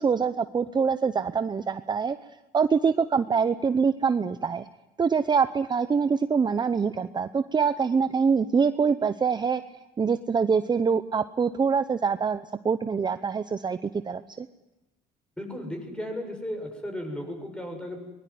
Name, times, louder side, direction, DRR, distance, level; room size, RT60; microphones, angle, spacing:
voice 1, 0.0-2.2 2.5-4.7 5.0-9.6 10.0-14.5, right 5 dB, 25° right, 11 dB, 0.8 m, -25 dB
voice 2, 15.4-18.0, left 1 dB, 5° left, 4 dB, 7.2 m, -35 dB
23.0 x 21.0 x 9.5 m, 1.0 s
cardioid pair, 110°, 17 cm